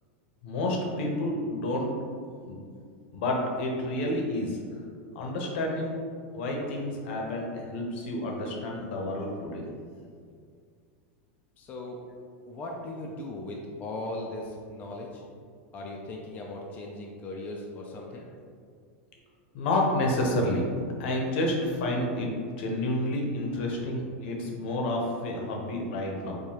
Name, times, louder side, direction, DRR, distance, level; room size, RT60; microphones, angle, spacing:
voice 1, 0.4-1.9 2.4-2.6 3.1-4.6 5.1-6.0 6.3-9.7 19.5-20.7 21.0-26.4, left 1 dB, 65° left, 0 dB, 0.8 m, -29 dB
voice 2, 11.6-12.0 12.5-15.2 15.7-18.3, left 2 dB, 25° left, -1 dB, 0.4 m, -38 dB
4.8 x 2.3 x 2.8 m, 2.1 s
supercardioid pair, 145°, 7 cm